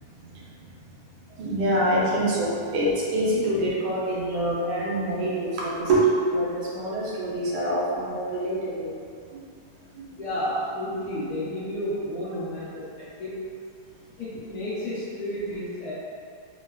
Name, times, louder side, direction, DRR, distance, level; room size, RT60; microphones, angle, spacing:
voice 1, 1.4-9.0 9.9-10.1, right 1 dB, 80° right, -6 dB, 1.5 m, -25 dB
voice 2, 10.2-13.4 14.2-15.9, equal, 75° left, -10 dB, 0.9 m, -31 dB
3.6 x 2.3 x 2.3 m, 2.3 s
omnidirectional pair, 2.4 m